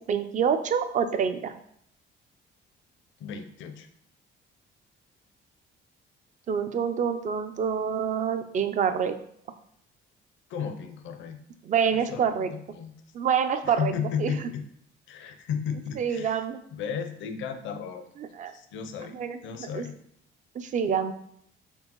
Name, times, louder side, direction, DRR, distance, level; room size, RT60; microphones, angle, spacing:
voice 1, 0.1-1.5 6.5-9.2 11.6-12.5 13.1-13.9 14.2-14.3 16.0-16.6 18.2-18.5 19.1-19.4 19.7-19.9 20.6-21.1, right 7 dB, 35° right, 9 dB, 0.4 m, -26 dB
voice 2, 3.2-3.9 10.5-11.4 11.9-12.9 13.6-14.7 15.1-16.4 16.7-18.1 18.5-19.1 19.4-19.9, left 7 dB, 70° left, 8 dB, 0.5 m, -34 dB
4.4 x 3.4 x 2.9 m, 0.69 s
cardioid pair, 125°, 21 cm